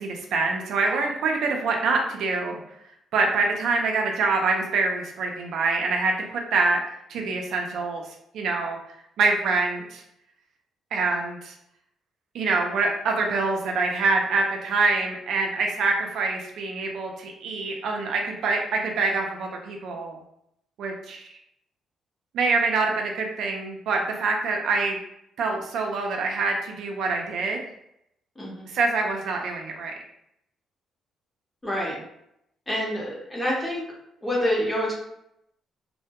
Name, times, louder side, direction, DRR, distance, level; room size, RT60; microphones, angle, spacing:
voice 1, 0.0-2.6 3.1-6.8 7.1-8.0 8.3-8.8 9.2-10.0 10.9-11.5 12.3-20.2 20.8-21.3 22.3-25.0 25.4-27.6 28.7-29.9, right 3 dB, 75° right, 1 dB, 0.4 m, -25 dB
voice 2, 28.4-28.7 31.6-32.0 32.7-33.8 34.2-34.9, equal, 15° left, -3 dB, 0.8 m, -27 dB
2.1 x 2.1 x 2.8 m, 0.76 s
cardioid pair, 90°, 0 cm